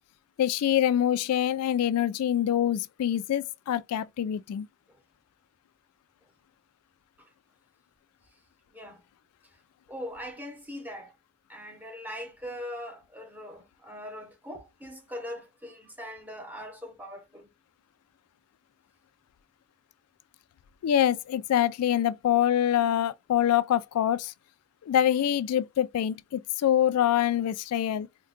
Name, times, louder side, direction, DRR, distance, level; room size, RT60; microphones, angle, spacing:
voice 1, 0.4-4.7 20.8-24.3 24.8-28.1, left 10 dB, 90° left, 0.3 m, -25 dB
voice 2, 8.7-9.0 9.9-11.1 11.5-17.5, equal, 5° right, 0.7 m, -41 dB
3.6 x 2.2 x 2.4 m
head